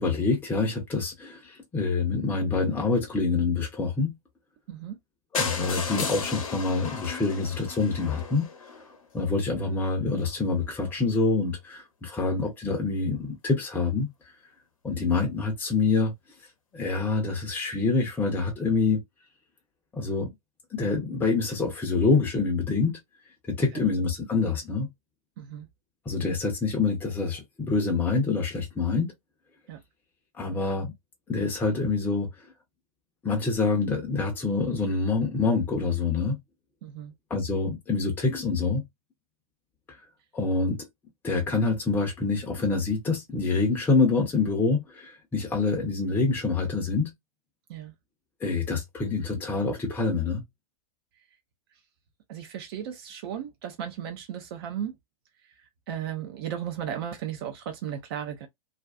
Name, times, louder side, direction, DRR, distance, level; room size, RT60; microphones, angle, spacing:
voice 1, 0.0-4.2 5.3-8.5 9.1-14.1 14.8-16.1 16.7-19.0 19.9-20.3 20.7-23.0 23.5-24.9 26.1-29.1 30.4-30.9 31.3-32.5 33.2-36.4 37.3-38.8 40.3-40.8 41.2-47.1 48.4-50.4, left 4 dB, 10° left, 0.7 m, -26 dB
sound 1, 5.3-9.2 9.9-10.0 10.2-10.3 10.6-10.7 10.9-11.0, left 5 dB, 65° left, 0.8 m, -34 dB
voice 2, 25.4-25.7 29.7-29.8 36.8-37.1 47.7-47.9 51.7-51.8 52.3-54.9 55.4-58.5, right 9 dB, 40° right, 0.6 m, -35 dB
2.4 x 2.3 x 2.3 m
figure-of-eight pair, 110°, 19 cm